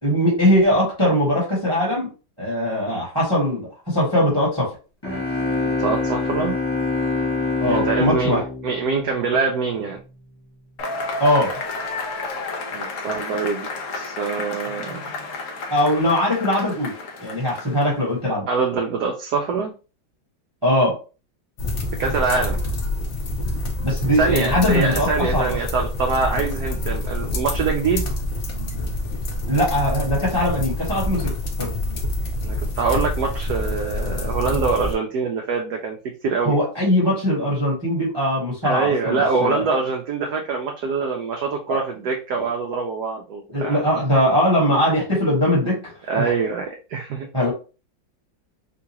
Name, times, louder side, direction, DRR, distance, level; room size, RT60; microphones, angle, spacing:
voice 1, 0.0-2.1 2.4-4.7 7.6-8.4 11.2-11.5 15.7-16.9 17.2-18.5 20.6-21.0 23.8-25.6 29.5-31.3 31.6-31.7 36.4-39.6 41.7-41.8 42.4-42.5 43.5-45.9 47.3-47.5, equal, 15° right, -4 dB, 1.1 m, -20 dB
sound 1, 5.0-9.7, left 3 dB, 25° left, 0.5 m, -25 dB
voice 2, 5.7-6.6 7.7-10.0 12.7-15.0 18.5-19.7 22.0-22.6 24.2-28.1 32.4-36.0 36.2-36.6 38.6-43.8 46.1-47.3, right 4 dB, 70° right, 2 dB, 0.9 m, -24 dB
Cheering / Applause / Crowd, 10.8-18.0, left 3 dB, 60° left, 0.8 m, -31 dB
sound 2, 21.6-34.9, left 1 dB, 85° left, 0.6 m, -27 dB
3.7 x 2.4 x 2.8 m, 0.33 s
omnidirectional pair, 2.1 m